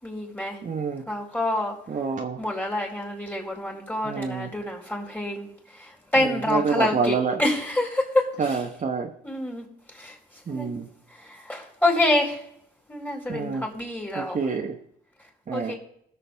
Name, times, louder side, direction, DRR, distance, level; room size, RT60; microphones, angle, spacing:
voice 1, 0.0-0.6 1.1-1.8 2.4-5.5 6.1-8.3 9.2-9.6 10.0-10.1 10.5-10.8 11.2-12.4 12.9-14.4 15.5-15.7, left 1 dB, 10° left, -1 dB, 4.4 m, -27 dB
voice 2, 0.6-1.0 1.9-2.4 4.0-4.5 6.2-7.4 8.4-9.1 10.5-10.9 13.3-13.6 14.1-14.8 15.5-15.7, right 5 dB, 40° right, 2 dB, 1.1 m, -27 dB
21.0 x 7.0 x 3.5 m, 0.71 s
cardioid pair, 90°, 20 cm